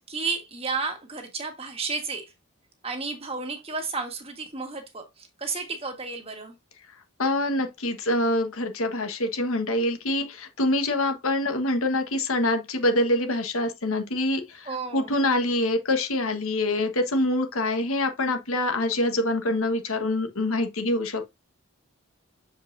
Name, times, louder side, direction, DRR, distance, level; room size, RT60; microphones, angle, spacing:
voice 1, 0.0-2.3 2.8-6.5 14.6-15.1, right 4 dB, 25° right, 1.5 m, -32 dB
voice 2, 7.2-21.2, left 1 dB, 70° left, 1.4 m, -25 dB
7.2 x 5.2 x 2.6 m
head